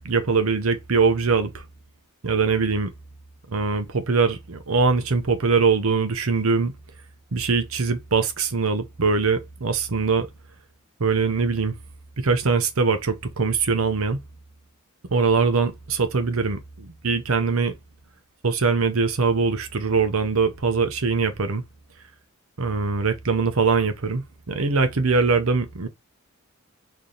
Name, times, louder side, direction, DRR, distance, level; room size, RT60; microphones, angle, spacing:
voice 1, 0.0-1.6 2.2-2.9 3.5-6.7 7.3-10.3 11.0-11.8 12.2-14.2 15.1-17.7 18.4-21.6 22.6-25.9, right 4 dB, 75° right, 0.8 m, -22 dB
3.3 x 2.8 x 3.9 m
head